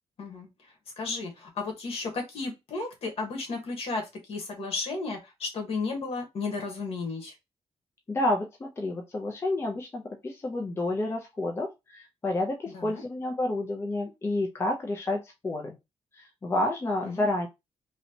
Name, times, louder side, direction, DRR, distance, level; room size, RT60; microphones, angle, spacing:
voice 1, 0.2-0.5 1.0-7.3 12.7-13.0 17.0-17.2, left 3 dB, 65° left, 2 dB, 1.4 m, -33 dB
voice 2, 8.1-15.8 16.1-17.5, left 2 dB, 20° left, 1 dB, 0.6 m, -30 dB
3.1 x 2.8 x 2.8 m, 0.22 s
wide cardioid pair, 155°, 11 cm